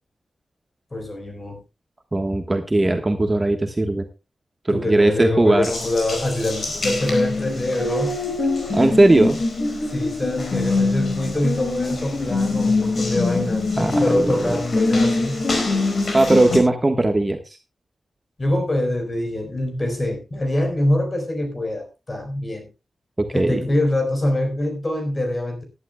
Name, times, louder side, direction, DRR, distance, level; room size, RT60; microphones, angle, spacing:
voice 1, 0.9-1.6 4.7-8.2 9.9-15.4 18.4-22.7 23.3-25.6, left 1 dB, 25° left, 6 dB, 4.4 m, -24 dB
voice 2, 2.1-4.1 4.6-5.7 8.7-9.4 13.8-14.6 16.1-17.4 23.2-23.7, right 2 dB, 20° right, 5 dB, 1.3 m, -18 dB
Water tap faucet, 5.6-16.6, left 3 dB, 50° left, 4.5 m, -24 dB
19.5 x 11.5 x 2.2 m, 0.27 s
wide cardioid pair, 140°, 0 cm